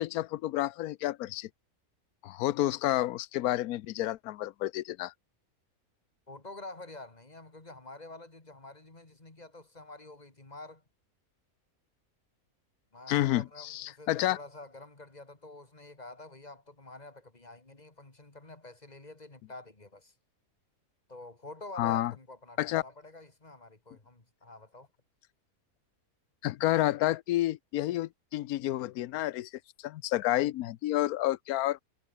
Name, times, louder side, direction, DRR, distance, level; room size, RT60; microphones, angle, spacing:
voice 1, 0.0-1.5 2.2-5.1 13.1-14.4 21.8-22.1 22.6-22.8 26.4-29.5 29.8-31.8, left 15 dB, 85° left, 1.1 m, -30 dB
voice 2, 6.3-10.8 12.9-20.1 21.1-24.9, left 2 dB, 30° left, 2.8 m, -48 dB
omnidirectional pair, 1.5 m